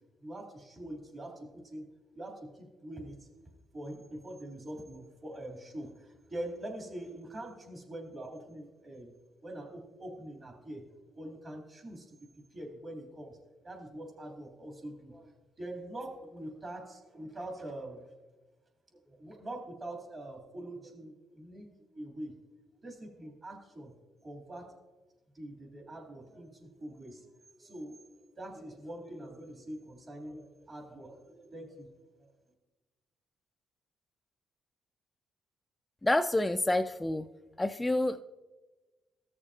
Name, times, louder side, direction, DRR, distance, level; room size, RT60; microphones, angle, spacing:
voice 1, 0.2-1.9 2.1-3.3 3.7-9.1 9.4-10.8 11.1-13.4 13.6-15.3 15.6-18.1 19.0-21.6 21.9-22.3 22.8-23.9 24.2-24.7 25.3-27.3 27.6-28.0 28.4-31.9 32.2-32.3, right 1 dB, 40° right, 0 dB, 3.0 m, -44 dB
voice 2, 36.0-37.3 37.6-38.2, left 1 dB, 15° left, 7 dB, 0.3 m, -28 dB
15.0 x 6.8 x 2.8 m, 1.2 s
cardioid pair, 90°, 0 cm